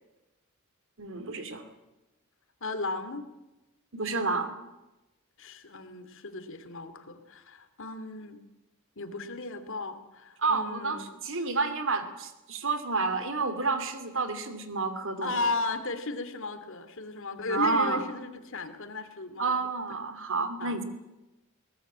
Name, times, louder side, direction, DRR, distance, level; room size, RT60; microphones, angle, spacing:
voice 1, 1.0-1.6 3.9-4.6 10.4-15.5 17.5-18.1 19.4-20.8, right 4 dB, 65° right, 10 dB, 2.9 m, -30 dB
voice 2, 2.6-3.3 5.4-8.4 9.0-11.0 15.2-19.5 20.6-20.8, left 3 dB, 65° left, 10 dB, 2.5 m, -35 dB
22.0 x 19.0 x 8.6 m, 1.0 s
head